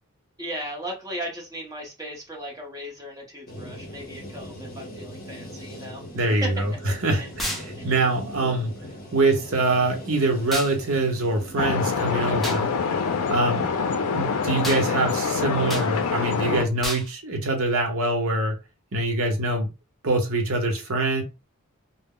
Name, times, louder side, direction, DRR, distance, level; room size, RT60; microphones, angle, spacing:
voice 1, 0.4-6.0 6.4-6.5 7.2-7.3 7.8-7.9 8.4-8.7, equal, 15° right, 0.8 m, -36 dB
waves crashing, 3.5-16.5, equal, 40° left, 0.8 m, -40 dB
voice 2, 6.1-6.7 7.0-8.7 9.1-12.7 13.3-13.7 14.1-18.5 18.9-19.7 20.0-21.2, right 2 dB, 70° right, 0.8 m, -24 dB
sound 1, 7.4-7.7 10.5-10.7 12.4-12.6 14.6-14.8 15.7-15.9 16.8-17.1, equal, ahead, 0.3 m, -30 dB
sound 2, 11.6-16.6, left 5 dB, 85° left, 0.4 m, -25 dB
2.0 x 2.0 x 3.6 m
head